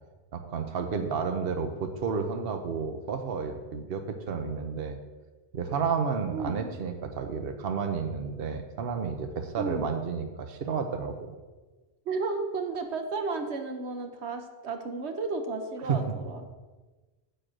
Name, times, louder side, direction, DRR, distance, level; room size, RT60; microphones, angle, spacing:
voice 1, 0.3-5.0 5.5-11.3 15.9-16.0, right 5 dB, 60° right, 6 dB, 1.0 m, -31 dB
voice 2, 6.3-6.7 9.6-9.9 12.1-16.4, right 3 dB, 85° right, 6 dB, 1.2 m, -33 dB
9.7 x 4.6 x 7.6 m, 1.2 s
omnidirectional pair, 1.1 m